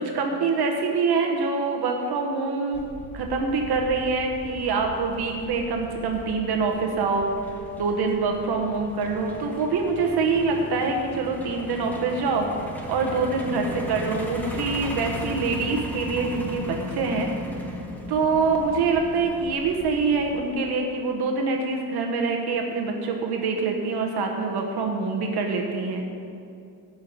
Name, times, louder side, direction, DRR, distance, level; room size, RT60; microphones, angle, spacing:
voice 1, 0.0-2.9 3.1-17.3 18.1-26.1, right 4 dB, 60° right, 2 dB, 1.2 m, -25 dB
Truck, 2.7-20.5, left 1 dB, 5° left, 1.3 m, -38 dB
12.0 x 5.8 x 8.2 m, 2.5 s
cardioid pair, 160°, 43 cm